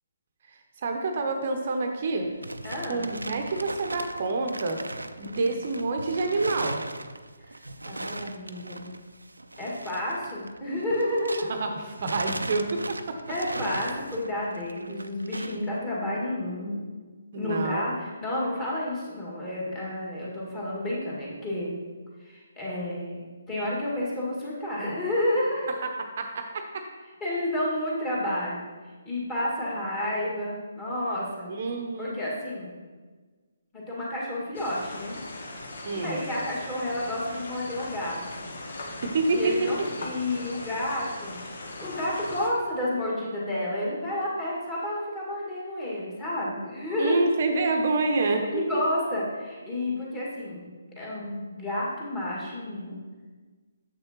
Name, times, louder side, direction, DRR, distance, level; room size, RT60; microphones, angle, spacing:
voice 1, 0.5-2.3 2.9-4.8 5.2-6.8 11.5-13.2 17.3-17.8 25.7-26.9 31.5-32.2 35.8-36.2 39.0-39.7 47.0-48.6, right 3 dB, 50° right, 5 dB, 0.7 m, -28 dB
sound 1, 2.0-11.7 12.0-15.7, right 2 dB, 90° right, 0.4 m, -38 dB
voice 2, 2.6-3.0 5.2-5.5 7.8-8.9 9.6-11.5 13.3-16.8 17.3-21.8 22.2-25.7 27.2-28.6 29.1-31.5 32.0-32.8 33.7-35.2 35.9-38.5 39.3-41.4 41.8-47.2 48.5-50.7 51.0-53.0, left 1 dB, 20° left, -7 dB, 2.1 m, -30 dB
sound 2, 34.5-42.5, left 2 dB, 60° left, 1.0 m, -39 dB
7.4 x 6.4 x 3.1 m, 1.4 s
figure-of-eight pair, 145°, 0 cm